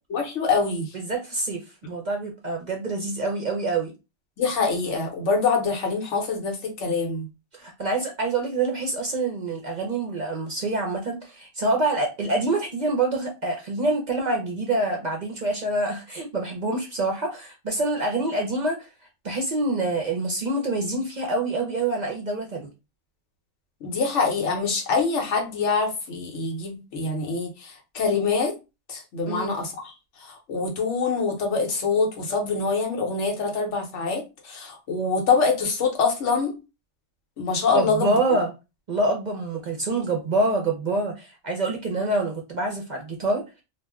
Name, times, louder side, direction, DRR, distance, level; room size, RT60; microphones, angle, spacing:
voice 1, 0.1-0.9 4.4-7.3 23.8-28.6 28.9-29.9 30.2-36.5 37.4-38.1, left 4 dB, 80° left, 1.1 m, -25 dB
voice 2, 1.1-3.9 7.6-18.9 19.2-22.7 29.3-29.6 37.7-38.5 38.9-43.6, right 2 dB, 50° right, 0.6 m, -26 dB
2.5 x 2.1 x 3.5 m
omnidirectional pair, 1.2 m